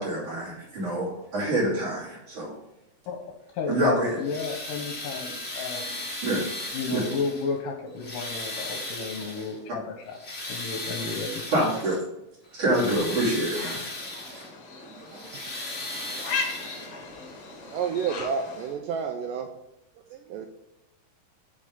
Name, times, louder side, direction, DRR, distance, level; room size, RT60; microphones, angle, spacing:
voice 1, 0.0-2.6 3.7-4.2 6.2-6.4 6.9-7.0 11.5-12.0 12.5-13.8 14.9-15.3, right 1 dB, 45° right, -4 dB, 3.5 m, -26 dB
voice 2, 3.5-6.0 6.7-10.2 10.5-11.5, left 4 dB, 75° left, 3 dB, 2.2 m, -32 dB
sound 1, 4.1-7.6 7.9-9.6 10.0-12.0 12.4-14.5 15.0-17.1 18.2-18.3 18.9-19.0, left 1 dB, 40° left, 0.9 m, -36 dB
sound 2, 13.5-18.8, left 4 dB, 55° left, 1.6 m, -37 dB
voice 3, 17.7-19.5 20.1-20.5, right 6 dB, 80° right, 4 dB, 2.0 m, -30 dB
8.4 x 5.3 x 3.7 m, 0.90 s
omnidirectional pair, 4.3 m